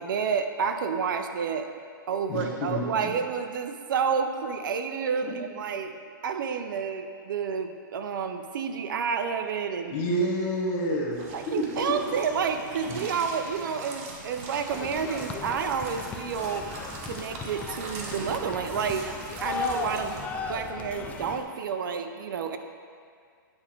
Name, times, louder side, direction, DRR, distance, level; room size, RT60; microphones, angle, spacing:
voice 1, 0.0-1.7 2.1-5.9 6.2-9.9 11.3-16.7 17.0-22.6, right 6 dB, 70° right, 7 dB, 0.5 m, -30 dB
voice 2, 2.3-3.1 5.2-5.3 9.9-11.2 11.4-12.1 12.8-13.0, equal, 40° left, -3 dB, 1.2 m, -29 dB
sound 1, 11.1-20.3, right 3 dB, 40° right, 0.9 m, -42 dB
sound 2, 14.7-21.4, left 5 dB, 10° left, 0.3 m, -36 dB
8.9 x 3.5 x 4.5 m, 2.2 s
hypercardioid pair, 145°, 11 cm